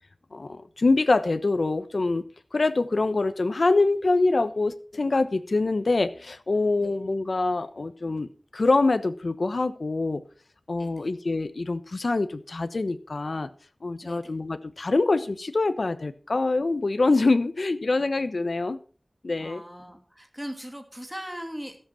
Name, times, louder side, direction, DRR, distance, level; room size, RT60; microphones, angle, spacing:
voice 1, 0.3-2.3 2.5-10.2 10.7-13.5 13.8-18.8 19.2-19.6, left 3 dB, 75° left, 12 dB, 1.1 m, -25 dB
voice 2, 10.8-11.1 14.0-14.3 19.4-21.8, equal, 5° right, 4 dB, 2.8 m, -39 dB
14.5 x 8.0 x 5.8 m, 0.39 s
wide cardioid pair, 65°, 0 cm